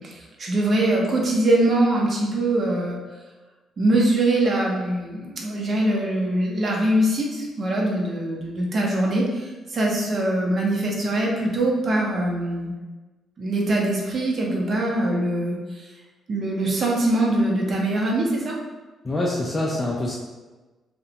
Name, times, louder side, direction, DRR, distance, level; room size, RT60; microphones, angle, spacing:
voice 1, 0.0-3.0 3.8-12.7 13.4-15.9 16.3-18.6, right 1 dB, 45° right, -2 dB, 0.6 m, -23 dB
voice 2, 19.0-20.2, left 1 dB, 30° left, -3 dB, 0.3 m, -25 dB
2.4 x 2.1 x 2.7 m, 1.2 s
cardioid pair, 90°, 0 cm